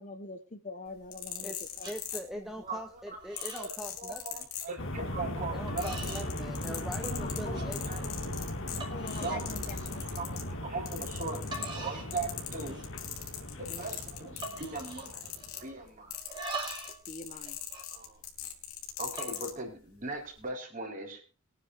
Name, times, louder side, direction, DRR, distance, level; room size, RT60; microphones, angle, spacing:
voice 1, 0.0-1.9 2.3-2.4 7.0-7.7 8.9-10.2 10.9-11.0 13.4-13.8 17.1-17.6, left 2 dB, 35° left, 8 dB, 1.3 m, -44 dB
sound 1, 0.9-2.7 3.4-5.1 5.4-10.5 10.9-11.9 12.1-19.5 20.3-20.4, left 11 dB, 80° left, 3.3 m, -40 dB
sound 2, 0.9-1.5 1.8-2.0 2.4-2.8 3.1-3.7 4.0-4.4 5.1-5.2 5.7-6.3 6.7-7.2 7.5-7.7 8.2-8.3 8.8-9.4 9.8-10.1 11.2-11.3 11.5-12.1 12.4-13.0 13.3-13.4 13.7-14.0 14.4-15.8 16.1-17.0 17.3-18.6 19.0-19.4, right 2 dB, 20° right, 3.8 m, -43 dB
voice 2, 1.4-4.5 5.5-8.1, equal, ahead, 4 dB, 1.0 m, -42 dB
voice 3, 2.6-3.2 3.5-6.6 7.4-8.5 9.1-12.8 13.6-16.1 17.9-18.2 19.0-21.3, right 3 dB, 35° right, 1 dB, 4.3 m, -40 dB
sound 3, 4.8-15.6, left 1 dB, 60° left, 2.2 m, -38 dB
23.0 x 9.7 x 2.6 m, 0.36 s
head